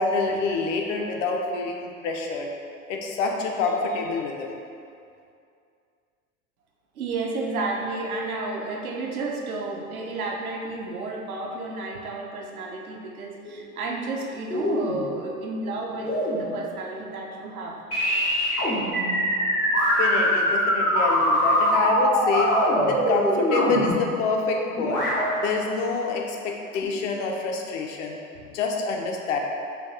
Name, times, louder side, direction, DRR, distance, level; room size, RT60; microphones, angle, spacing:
voice 1, 0.0-2.5 2.9-4.5 20.0-22.5 22.9-25.0 25.4-28.2 28.5-29.4, left 4 dB, 55° left, 1 dB, 0.5 m, -27 dB
voice 2, 7.0-16.1 16.4-17.8, right 3 dB, 75° right, 0 dB, 0.6 m, -31 dB
sound 1, 13.4-14.1 14.5-15.4 16.0-16.8 17.9-24.3 24.8-25.8 26.8-26.9, equal, 90° left, 0.9 m, -26 dB
sound 2, 18.9-23.9, equal, ahead, 0.3 m, -23 dB
4.3 x 2.3 x 2.7 m, 2.4 s
figure-of-eight pair, 75°, 43 cm